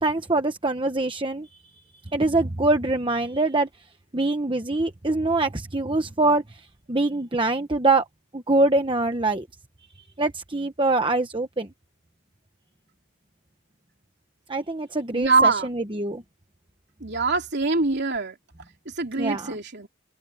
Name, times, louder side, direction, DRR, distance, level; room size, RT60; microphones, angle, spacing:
voice 1, 0.0-1.5 2.1-3.7 4.1-6.6 6.9-8.1 8.3-9.5 10.2-11.7 14.5-16.2 19.2-19.6, right 2 dB, 20° right, 1.0 m, -24 dB
voice 2, 15.1-15.7 17.0-18.3 18.8-19.9, right 3 dB, 50° right, 3.1 m, -23 dB
open air
head